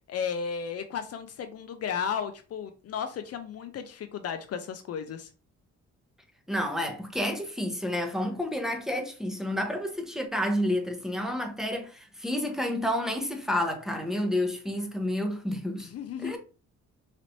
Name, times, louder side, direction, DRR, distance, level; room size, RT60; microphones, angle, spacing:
voice 1, 0.1-5.3 15.9-16.4, left 7 dB, 55° left, 0.5 m, -34 dB
voice 2, 6.5-15.9 16.2-16.4, left 1 dB, ahead, 0.8 m, -30 dB
4.1 x 3.0 x 2.7 m
cardioid pair, 90°, 30 cm